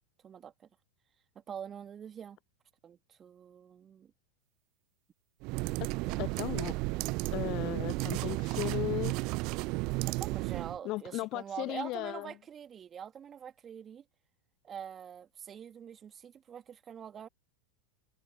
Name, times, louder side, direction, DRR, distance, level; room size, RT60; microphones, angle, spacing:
voice 1, 0.2-0.7 1.3-2.4 2.8-4.1 6.0-6.2 10.1-14.0 14.6-17.3, right 8 dB, 25° right, 3.2 m, -45 dB
sound 1, 5.4-10.8, right 25 dB, 40° right, 0.9 m, -33 dB
voice 2, 6.2-6.7 7.3-9.1 10.8-12.3, left 20 dB, 40° left, 0.6 m, -36 dB
figure-of-eight pair, 90°, 0 cm